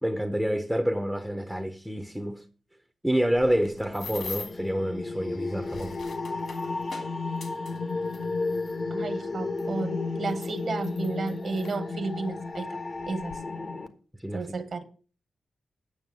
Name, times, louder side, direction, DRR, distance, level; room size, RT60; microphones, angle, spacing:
voice 1, 0.0-2.4 3.0-6.0 14.2-14.5, equal, ahead, 0.9 m, -28 dB
sound 1, 3.3-4.7 5.4-8.8 9.6-9.7 10.3-11.8 12.5-12.7 13.0-13.4, left 4 dB, 65° left, 2.9 m, -43 dB
sound 2, 3.7-13.9, left 3 dB, 45° left, 1.3 m, -33 dB
voice 2, 8.9-12.8 13.1-13.3 14.3-14.8, right 4 dB, 55° right, 1.5 m, -32 dB
9.2 x 6.5 x 6.4 m
cardioid pair, 85°, 0 cm